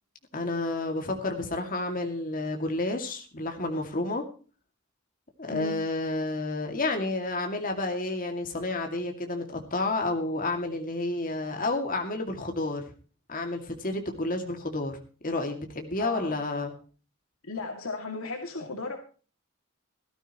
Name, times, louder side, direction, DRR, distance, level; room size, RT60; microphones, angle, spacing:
voice 1, 0.3-4.2 5.4-12.8 13.3-15.0 15.2-16.7, left 2 dB, 40° left, 3 dB, 2.4 m, -30 dB
voice 2, 16.0-16.4 17.5-19.0, left 3 dB, 85° left, 3 dB, 2.5 m, -35 dB
18.0 x 13.5 x 3.0 m, 0.38 s
head